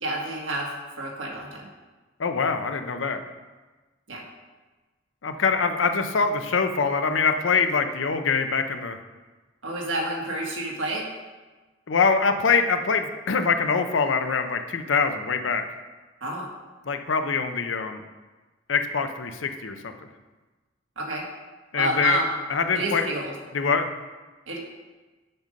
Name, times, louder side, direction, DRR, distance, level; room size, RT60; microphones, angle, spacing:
voice 1, 0.0-1.7 4.1-4.2 9.6-11.0 16.2-16.5 21.0-21.2 21.7-22.3 22.7-23.3 24.5-24.6, right 2 dB, 85° right, -1 dB, 1.7 m, -29 dB
voice 2, 2.2-3.2 5.2-9.0 11.9-15.6 16.9-18.0 18.7-19.9 21.7-22.2 22.5-23.0 23.5-23.9, left 5 dB, 75° left, 7 dB, 0.6 m, -24 dB
7.8 x 5.4 x 5.2 m, 1.3 s
head